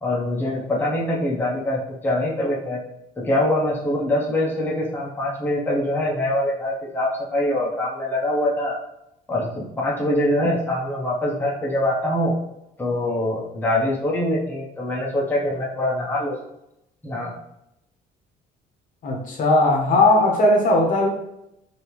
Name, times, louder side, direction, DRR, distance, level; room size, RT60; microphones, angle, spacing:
voice 1, 0.0-2.8 3.2-8.7 9.3-12.3 12.8-16.4 17.0-17.3, left 1 dB, 10° left, -4 dB, 0.8 m, -24 dB
voice 2, 19.0-21.1, left 2 dB, 50° left, -1 dB, 0.8 m, -18 dB
3.3 x 2.7 x 3.0 m, 0.84 s
cardioid pair, 110°, 17 cm